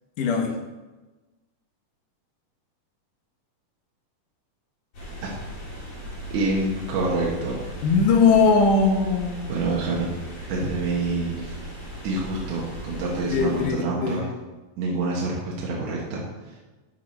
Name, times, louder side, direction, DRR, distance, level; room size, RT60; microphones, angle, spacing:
voice 1, 0.2-0.5 7.8-9.9 13.3-14.2, left 4 dB, 75° left, 3 dB, 2.6 m, -20 dB
sound 1, 4.9-13.7, equal, 45° left, 3.3 m, -37 dB
voice 2, 6.3-7.6 9.5-10.2 10.5-11.6 12.0-14.2 14.8-16.2, right 3 dB, 75° right, -4 dB, 3.0 m, -27 dB
13.0 x 4.9 x 4.4 m, 1.2 s
omnidirectional pair, 3.8 m